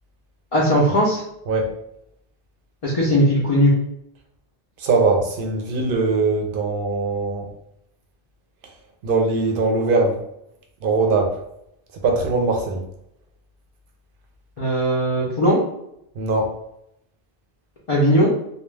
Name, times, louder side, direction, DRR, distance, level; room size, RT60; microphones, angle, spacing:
voice 1, 0.5-1.2 2.8-3.7 14.6-15.6 17.9-18.3, equal, 45° left, -6 dB, 0.5 m, -18 dB
voice 2, 4.8-7.5 9.0-10.2 10.8-11.4 12.0-12.8 16.2-16.5, right 3 dB, 65° right, 2 dB, 0.7 m, -21 dB
2.2 x 2.1 x 3.2 m, 0.78 s
omnidirectional pair, 1.0 m